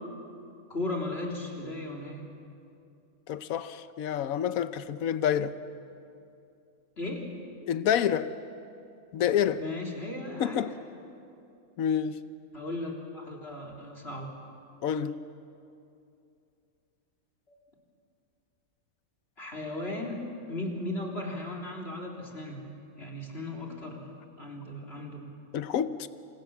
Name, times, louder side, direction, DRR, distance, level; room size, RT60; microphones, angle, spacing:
voice 1, 0.7-2.2 7.0-7.3 9.6-10.7 12.5-14.3 17.5-17.6 19.4-20.2 20.5-22.7 23.0-24.1 24.4-25.3, left 2 dB, 45° left, 3.9 m, -36 dB
voice 2, 3.3-5.6 7.7-8.3 9.1-9.6 10.4-10.7 11.8-12.3 14.8-15.2 25.5-26.1, left 9 dB, 75° left, 1.2 m, -28 dB
27.5 x 27.0 x 7.2 m
omnidirectional pair, 1.5 m